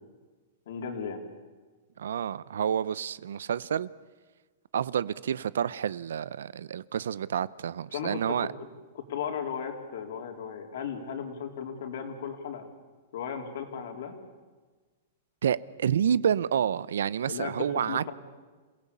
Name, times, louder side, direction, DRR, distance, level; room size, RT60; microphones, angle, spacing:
voice 1, 0.7-1.2 7.9-8.5 8.9-12.7 13.1-14.2 17.3-18.1, left 7 dB, 60° left, 3.7 m, -36 dB
voice 2, 2.0-3.9 4.7-8.5 15.4-18.1, right 8 dB, 85° right, 0.7 m, -29 dB
27.5 x 17.0 x 8.6 m
supercardioid pair, 165°, 0 cm